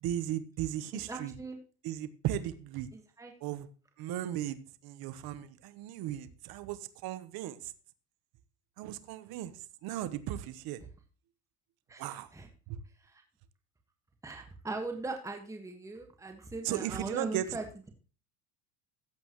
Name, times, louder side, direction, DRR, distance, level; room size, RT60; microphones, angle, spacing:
voice 1, 0.0-1.3 1.8-2.9 3.4-3.7 4.0-7.7 8.8-10.8 12.0-12.3 12.7-12.8 16.6-17.5, right 12 dB, 55° right, 14 dB, 1.1 m, -36 dB
voice 2, 1.1-1.6 2.9-3.3 11.9-12.5 13.0-13.2 14.2-17.9, right 3 dB, 5° right, 3 dB, 1.5 m, -40 dB
14.0 x 8.6 x 3.0 m, 0.37 s
cardioid pair, 130°, 43 cm